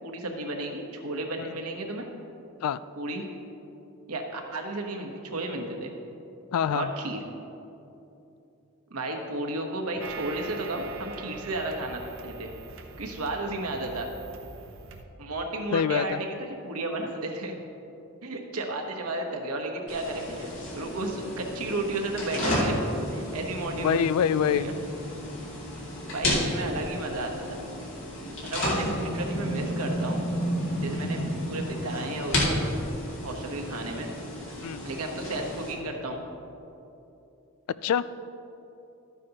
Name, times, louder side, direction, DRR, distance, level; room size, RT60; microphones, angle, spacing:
voice 1, 0.0-2.1 2.9-3.2 4.1-5.9 6.7-7.2 8.9-12.5 13.0-14.1 15.2-17.6 18.2-22.8 23.1-24.0 24.4-24.7 26.1-27.6 28.5-30.3 30.8-31.2 31.5-32.6 33.2-34.1 34.8-36.2, right 2 dB, 85° right, 2 dB, 1.2 m, -33 dB
voice 2, 6.5-6.9 15.7-16.2 23.8-24.7 34.6-34.8 37.8-38.1, left 8 dB, 85° left, 16 dB, 0.3 m, -25 dB
sound 1, 10.0-15.0, right 3 dB, 60° right, 0.7 m, -42 dB
sound 2, 19.9-35.7, equal, 55° left, 2.4 m, -31 dB
13.0 x 9.3 x 2.9 m, 2.9 s
head